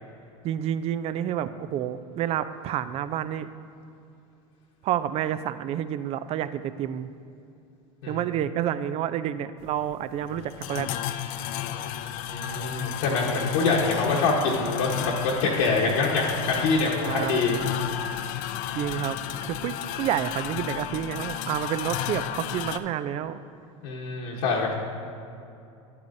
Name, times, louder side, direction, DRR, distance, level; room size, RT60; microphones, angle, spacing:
voice 1, 0.4-3.5 4.8-7.1 8.1-10.9 17.0-17.6 18.7-23.4, right 10 dB, 40° right, 13 dB, 0.4 m, -29 dB
sound 1, 9.6-22.8, left 10 dB, 55° left, 0.4 m, -33 dB
voice 2, 12.3-17.6 23.8-24.7, left 3 dB, 75° left, -5 dB, 1.2 m, -25 dB
10.5 x 8.4 x 2.7 m, 2.6 s
supercardioid pair, 110°, 16 cm